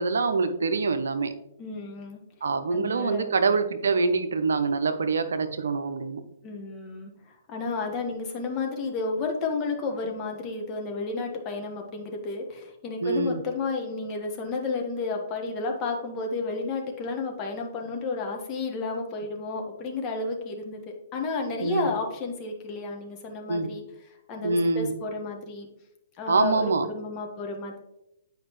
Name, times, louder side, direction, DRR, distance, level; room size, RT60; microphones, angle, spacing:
voice 1, 0.0-1.3 2.4-6.2 13.0-13.4 21.6-21.9 23.5-23.7 24.4-24.9 26.3-26.9, right 4 dB, 75° right, 9 dB, 0.6 m, -25 dB
voice 2, 1.6-2.2 2.7-3.3 6.4-7.1 7.5-23.8 24.3-25.7 26.2-27.8, left 3 dB, 30° left, 2 dB, 1.4 m, -32 dB
9.0 x 4.9 x 3.0 m, 0.86 s
figure-of-eight pair, 120°, 0 cm